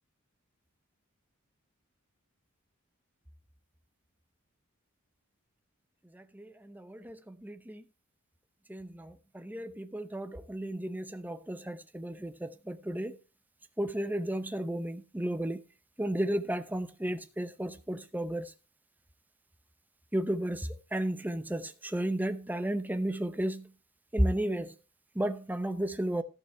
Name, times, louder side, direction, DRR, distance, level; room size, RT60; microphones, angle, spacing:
voice 1, 9.9-11.6 11.9-12.1 12.9-13.1 13.8-15.6 16.0-18.4 20.1-20.6 20.9-21.6 21.9-23.6 24.1-24.6 25.2-26.2, right 1 dB, 10° right, 0.8 m, -32 dB
14.0 x 5.9 x 4.5 m
head